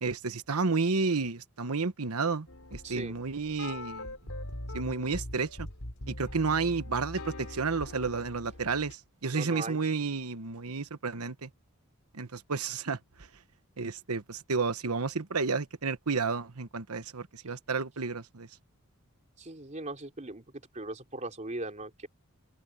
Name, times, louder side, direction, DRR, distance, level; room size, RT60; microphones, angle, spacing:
voice 1, 0.0-4.1 4.7-5.7 6.1-11.5 12.1-13.0 13.8-18.5, right 4 dB, 90° right, 1.2 m, -31 dB
sound 1, 2.5-8.9, left 1 dB, 75° left, 3.2 m, -42 dB
voice 2, 2.8-3.2 9.3-9.8 19.4-20.4 20.7-22.1, right 2 dB, 35° right, 3.5 m, -39 dB
open air
head